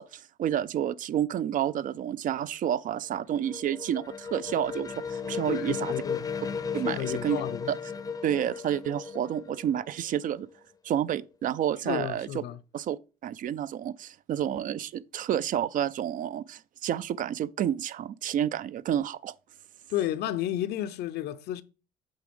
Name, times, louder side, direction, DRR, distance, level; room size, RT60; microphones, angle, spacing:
voice 1, 0.0-5.9 6.7-7.4 7.7-7.8 8.2-10.5 10.8-12.4 12.7-13.0 13.2-19.3, right 10 dB, 50° right, 0.4 m, -30 dB
sound 1, 2.8-10.5, left 6 dB, 20° left, 0.6 m, -36 dB
voice 2, 5.5-6.2 6.8-7.7 11.8-12.6 19.9-21.6, left 12 dB, 75° left, 0.6 m, -32 dB
8.1 x 3.8 x 5.2 m
cardioid pair, 110°, 17 cm